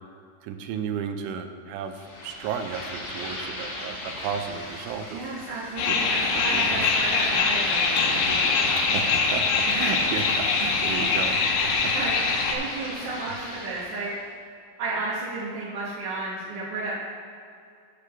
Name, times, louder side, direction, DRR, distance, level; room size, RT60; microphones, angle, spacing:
voice 1, 0.4-5.2 5.9-6.0 6.5-6.8 8.8-11.9 13.2-13.4, right 7 dB, 80° right, 7 dB, 3.0 m, -33 dB
sound 1, 1.9-14.2, left 1 dB, 65° left, 1.4 m, -36 dB
voice 2, 5.1-8.1 9.7-9.9 11.9-12.1 12.5-14.1 14.8-16.9, right 3 dB, 65° right, -9 dB, 2.2 m, -32 dB
sound 2, 5.8-12.5, left 4 dB, 80° left, 3.4 m, -23 dB
10.0 x 4.9 x 6.7 m, 2.4 s
omnidirectional pair, 5.7 m